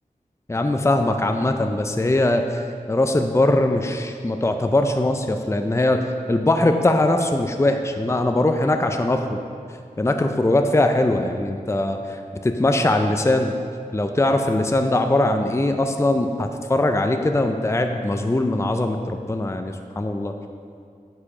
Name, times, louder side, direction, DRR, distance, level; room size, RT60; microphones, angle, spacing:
voice 1, 0.5-9.4 10.0-13.5 13.9-20.3, left 1 dB, 20° left, 5 dB, 0.5 m, -21 dB
8.8 x 4.8 x 5.6 m, 2.4 s
cardioid pair, 45°, 14 cm